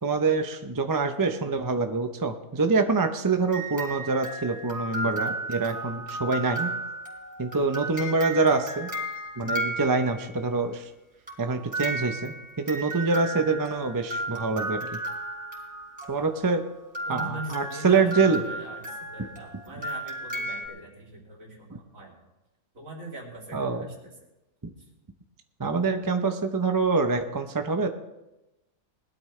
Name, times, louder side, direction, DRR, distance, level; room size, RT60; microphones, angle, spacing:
voice 1, 0.0-6.7 7.4-8.9 9.4-10.9 11.4-14.8 16.1-16.6 17.1-18.4 23.5-23.9 25.6-27.9, right 4 dB, 20° right, 6 dB, 0.5 m, -25 dB
sound 1, 3.5-10.5 11.3-20.7, right 1 dB, 5° right, 3.8 m, -34 dB
voice 2, 17.1-22.2 22.7-24.1, right 1 dB, 60° right, -2 dB, 3.2 m, -41 dB
20.5 x 12.5 x 3.3 m, 0.98 s
omnidirectional pair, 1.6 m